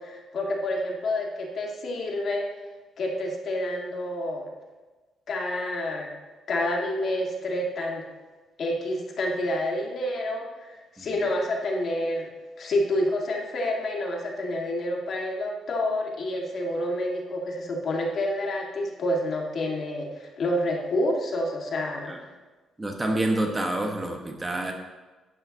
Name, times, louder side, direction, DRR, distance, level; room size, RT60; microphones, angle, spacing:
voice 1, 0.0-2.5 3.0-4.5 5.3-6.1 6.5-8.0 8.6-12.3 12.6-22.1, left 1 dB, 55° left, 0 dB, 1.8 m, -28 dB
voice 2, 22.8-24.7, right 1 dB, 20° right, 2 dB, 1.4 m, -27 dB
11.5 x 8.9 x 2.9 m, 1.3 s
cardioid pair, 90°, 0 cm